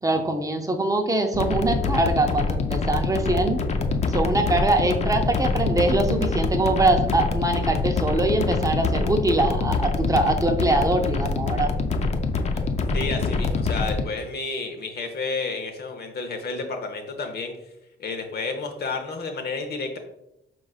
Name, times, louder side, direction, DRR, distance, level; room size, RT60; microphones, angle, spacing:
voice 1, 0.0-3.6 4.1-11.7, right 2 dB, 15° right, 5 dB, 0.5 m, -23 dB
sound 1, 1.3-14.0, left 4 dB, 35° left, 0.4 m, -25 dB
voice 2, 12.9-17.5 18.0-20.0, left 3 dB, 55° left, 5 dB, 0.8 m, -31 dB
4.8 x 3.8 x 2.3 m, 0.86 s
cardioid pair, 90°, 20 cm